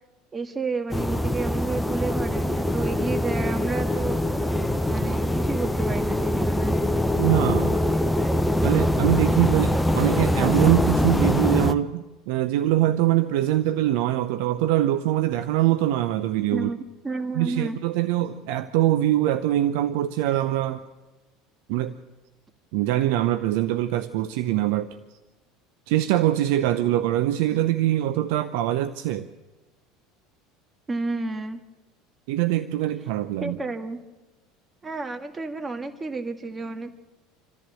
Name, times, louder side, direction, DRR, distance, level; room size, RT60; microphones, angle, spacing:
voice 1, 0.3-4.2 4.9-6.8 16.5-17.8 30.9-31.6 33.4-34.0 34.8-36.9, right 3 dB, 20° right, 7 dB, 1.9 m, -31 dB
sound 1, 0.9-11.7, left 1 dB, 5° left, 1.0 m, -23 dB
voice 2, 7.2-7.8 8.6-16.7 17.3-20.8 21.7-21.9 22.7-25.0 25.9-29.3 32.3-33.6, right 13 dB, 65° right, 12 dB, 0.7 m, -23 dB
27.0 x 14.0 x 7.7 m, 1.2 s
hypercardioid pair, 70°, 0 cm